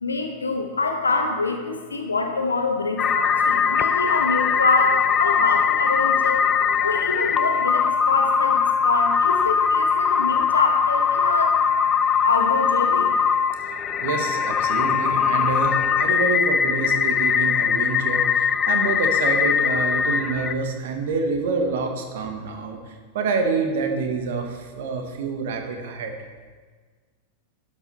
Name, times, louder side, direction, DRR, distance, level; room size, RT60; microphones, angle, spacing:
voice 1, 0.0-6.4 6.8-11.6 12.2-13.1, left 3 dB, 75° left, 3 dB, 1.1 m, -25 dB
sound 1, 3.0-20.5, left 6 dB, 25° left, 0.4 m, -21 dB
voice 2, 14.0-26.1, right 4 dB, 55° right, 4 dB, 1.3 m, -27 dB
12.0 x 5.4 x 4.1 m, 1.5 s
figure-of-eight pair, 90°, 0 cm